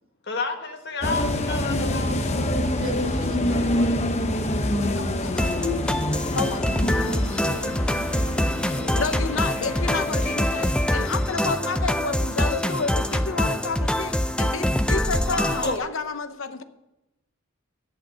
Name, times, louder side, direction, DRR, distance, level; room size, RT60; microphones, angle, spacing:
voice 1, 0.3-2.2 15.3-15.8, left 3 dB, 50° left, 4 dB, 1.6 m, -30 dB
sound 1, 1.0-11.7, left 1 dB, 30° left, 0.8 m, -27 dB
voice 2, 2.8-4.2 6.7-9.0 9.6-9.8, right 2 dB, 75° right, 7 dB, 1.2 m, -38 dB
voice 3, 4.9-6.7 7.9-8.2 8.6-16.6, left 4 dB, 70° left, 10 dB, 0.8 m, -31 dB
sound 2, 5.4-15.8, left 1 dB, 5° left, 0.4 m, -25 dB
11.0 x 8.8 x 5.7 m, 0.94 s
head